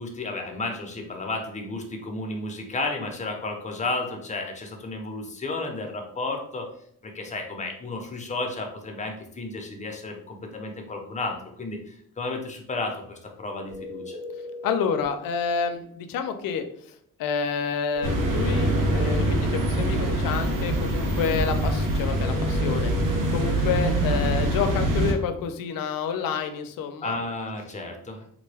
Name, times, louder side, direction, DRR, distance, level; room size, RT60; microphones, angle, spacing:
voice 1, 0.0-6.7 7.0-14.2 27.0-28.2, left 2 dB, 20° left, 3 dB, 0.6 m, -32 dB
sound 1, 13.7-15.1 17.9-19.3 22.2-23.6, left 2 dB, 45° right, 1.3 m, -38 dB
voice 2, 14.6-16.9 17.2-22.9 23.3-27.2, left 6 dB, 90° left, 7 dB, 0.5 m, -29 dB
sound 2, 18.0-25.1, right 1 dB, 75° right, 0.8 m, -24 dB
3.7 x 2.2 x 3.3 m, 0.68 s
cardioid pair, 105°, 33 cm